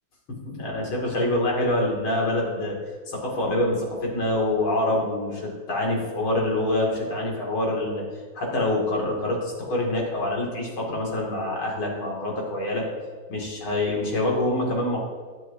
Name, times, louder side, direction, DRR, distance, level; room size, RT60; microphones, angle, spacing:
voice 1, 0.4-2.8 3.1-8.0 8.3-12.8 13.3-15.0, left 1 dB, 75° left, -2 dB, 3.4 m, -25 dB
21.5 x 7.8 x 2.8 m, 1.5 s
omnidirectional pair, 2.3 m